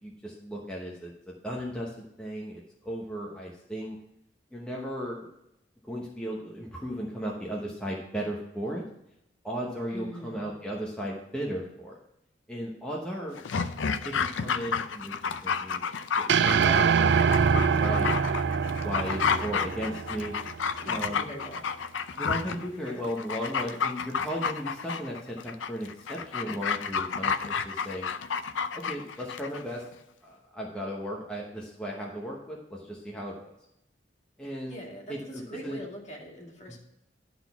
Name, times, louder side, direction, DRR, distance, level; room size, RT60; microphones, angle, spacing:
voice 1, 0.0-4.0 4.5-5.3 5.9-8.8 9.4-12.0 12.5-13.4 14.0-15.8 16.2-17.1 17.4-18.1 18.8-20.4 20.9-21.2 22.2-28.1 28.7-29.8 30.2-33.5 34.4-34.8 35.1-35.8 36.7-36.8, equal, 5° left, -3 dB, 1.0 m, -36 dB
voice 2, 9.9-10.5 20.8-21.7 22.8-23.1 34.6-36.8, equal, 40° left, -2 dB, 2.2 m, -42 dB
Dog, 13.4-29.6 29.9-30.0, left 6 dB, 90° left, 0.5 m, -31 dB
sound 1, 16.3-20.7, right 6 dB, 65° right, 0.4 m, -24 dB
11.0 x 4.1 x 5.7 m, 0.83 s
head